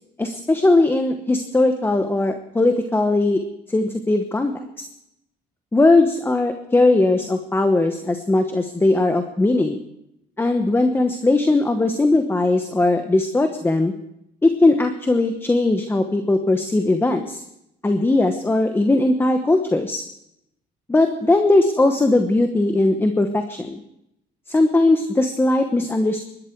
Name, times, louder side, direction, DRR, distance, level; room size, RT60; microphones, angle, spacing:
voice 1, 0.2-3.4 3.7-4.9 5.7-9.8 10.4-13.9 14.4-17.4 17.8-20.0 20.9-23.8 24.5-26.2, left 2 dB, 15° left, 7 dB, 1.0 m, -19 dB
22.0 x 12.0 x 4.6 m, 0.81 s
cardioid pair, 110°, 17 cm